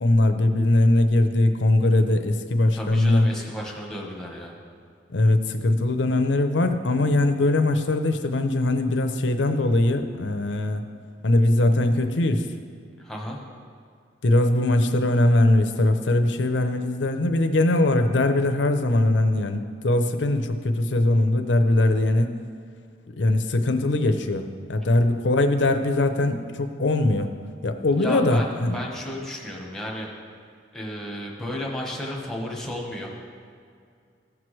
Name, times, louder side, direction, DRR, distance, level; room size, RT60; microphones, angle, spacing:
voice 1, 0.0-3.3 5.1-10.9 11.2-12.5 14.2-22.4 23.2-27.3 27.6-28.8, left 1 dB, 75° left, 7 dB, 0.7 m, -21 dB
voice 2, 2.7-4.5 13.0-13.4 28.0-30.1 30.7-33.1, equal, 5° left, -2 dB, 1.2 m, -33 dB
15.0 x 6.1 x 3.2 m, 2.3 s
head